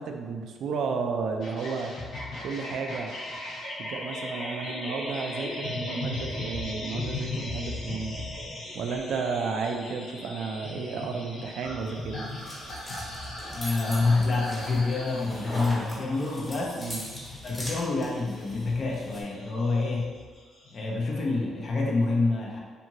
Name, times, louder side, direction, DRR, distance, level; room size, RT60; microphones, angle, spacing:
voice 1, 0.0-2.0 2.4-3.1 3.8-8.3 8.7-12.3 16.8-17.0, right 5 dB, 75° right, 4 dB, 0.3 m, -32 dB
sound 1, 1.4-20.9, left 1 dB, 75° left, 0.8 m, -38 dB
sound 2, 11.8-19.2, equal, 15° left, 1.2 m, -41 dB
voice 2, 13.5-16.9 17.4-20.1 20.7-22.6, left 3 dB, 50° left, -2 dB, 0.5 m, -27 dB
2.6 x 2.5 x 2.9 m, 1.5 s
cardioid pair, 90°, 0 cm